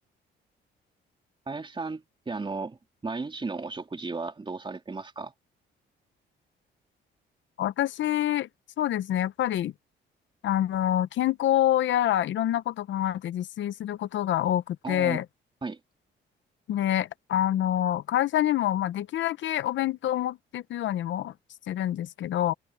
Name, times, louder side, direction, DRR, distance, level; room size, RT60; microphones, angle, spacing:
voice 1, 1.5-5.3 14.8-15.2 15.6-15.8, right 3 dB, 25° right, 3.7 m, -35 dB
voice 2, 7.6-8.5 8.8-9.7 10.4-15.2 16.7-21.3 21.7-22.5, left 12 dB, 70° left, 0.8 m, -26 dB
cardioid pair, 90°, 20 cm